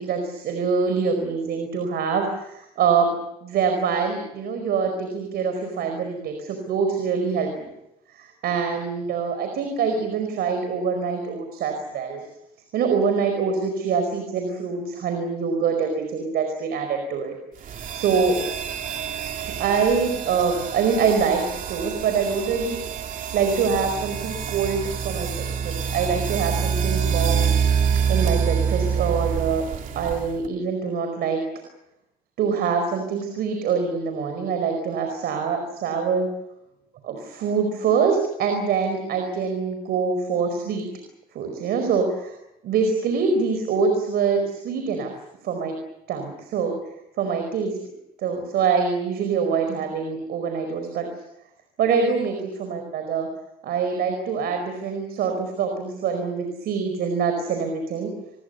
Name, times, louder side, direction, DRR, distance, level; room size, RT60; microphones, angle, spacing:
voice 1, 0.0-7.7 8.1-12.2 12.7-17.4 17.9-18.4 19.4-22.8 23.3-27.5 28.1-29.6 29.9-31.4 32.4-36.3 37.0-40.8 41.3-42.4 42.6-45.1 45.4-45.8 46.1-46.7 47.2-47.8 48.2-51.1 51.8-53.3 53.6-58.1, right 5 dB, 70° right, 5 dB, 4.9 m, -24 dB
sound 1, 17.6-30.5, right 7 dB, 50° right, 2.9 m, -26 dB
28.0 x 22.0 x 6.8 m, 0.84 s
cardioid pair, 110°, 17 cm